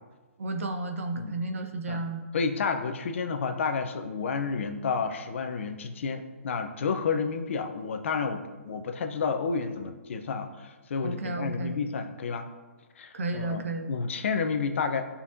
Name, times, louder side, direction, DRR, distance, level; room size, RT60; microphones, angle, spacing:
voice 1, 0.4-2.3 11.0-11.8 13.1-13.9, right 2 dB, 70° right, 5 dB, 1.2 m, -32 dB
voice 2, 2.3-12.5 13.0-15.0, left 5 dB, 60° left, 6 dB, 1.0 m, -30 dB
15.5 x 5.7 x 2.9 m, 1.3 s
hypercardioid pair, 135°, 7 cm